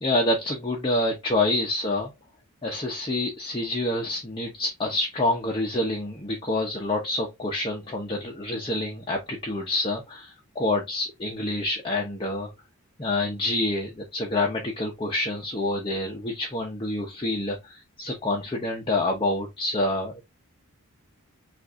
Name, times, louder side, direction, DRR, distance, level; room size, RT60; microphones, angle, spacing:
voice 1, 0.0-2.1 2.6-12.5 13.0-20.2, left 2 dB, 25° left, 0.8 m, -27 dB
6.1 x 2.6 x 2.5 m
head